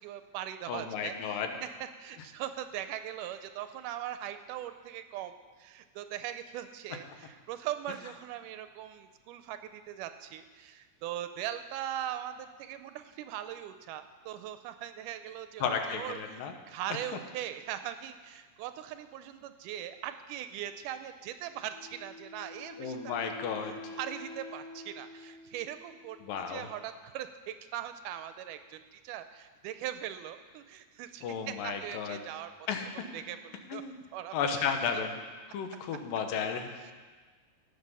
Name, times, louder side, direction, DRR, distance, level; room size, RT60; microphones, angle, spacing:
voice 1, 0.0-1.7 2.0-23.3 23.6-26.2 26.5-32.5 33.1-35.1 36.8-36.9, right 11 dB, 80° right, 10 dB, 2.0 m, -40 dB
voice 2, 0.7-1.5 15.6-16.5 22.8-23.8 26.2-26.7 31.2-32.2 32.7-32.9 33.7-34.0 34.3-35.2 35.5-36.9, left 6 dB, 85° left, 5 dB, 2.7 m, -33 dB
Wind instrument woodwind instrument, 21.7-26.8, left 2 dB, 60° left, 1.9 m, -47 dB
17.0 x 6.8 x 5.5 m, 1.4 s
omnidirectional pair, 3.9 m